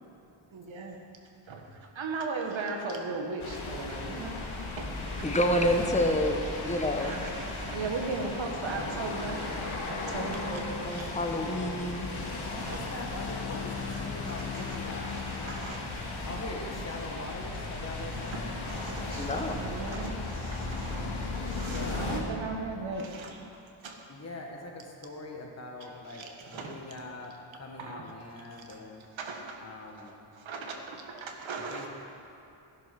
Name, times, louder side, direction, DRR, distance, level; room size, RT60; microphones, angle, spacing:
voice 1, 0.5-0.9 1.5-1.6 2.0-5.3 7.0-9.5 9.9-10.6 10.9-11.2 12.6-12.8 13.9-14.0 14.2-14.8 15.1-15.8 18.3-23.5 23.8-24.0 26.1-26.7 27.8-28.0 28.5-28.8 29.2-29.6 30.0-31.9, right 3 dB, 75° right, 2 dB, 1.7 m, -38 dB
sound 1, 3.4-22.2, left 2 dB, 85° left, 2.4 m, -36 dB
voice 2, 5.2-7.4 10.1-12.1 19.2-19.5, left 1 dB, 15° left, 3 dB, 1.2 m, -29 dB
voice 3, 8.0-8.3 12.1-15.9 16.3-18.4 21.5-22.3 24.1-29.1 29.6-30.2 31.6-31.9, left 2 dB, 35° left, 0 dB, 1.9 m, -42 dB
Bowed string instrument, 12.4-16.5, left 9 dB, 50° left, 0.7 m, -41 dB
13.0 x 10.5 x 6.1 m, 2.7 s
wide cardioid pair, 105°, 47 cm